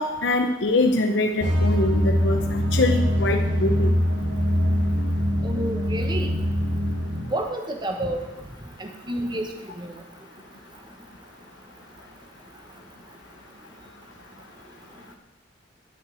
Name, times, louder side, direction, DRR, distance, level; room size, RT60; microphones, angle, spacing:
voice 1, 0.0-3.9, left 2 dB, 70° left, 3 dB, 0.8 m, -23 dB
sound 1, 1.4-7.2, equal, 80° right, 1.9 m, -23 dB
voice 2, 5.4-6.3 7.3-8.2 8.8-9.5 9.8-9.9, right 1 dB, 25° right, 4 dB, 1.2 m, -29 dB
11.5 x 5.6 x 8.3 m, 1.0 s
head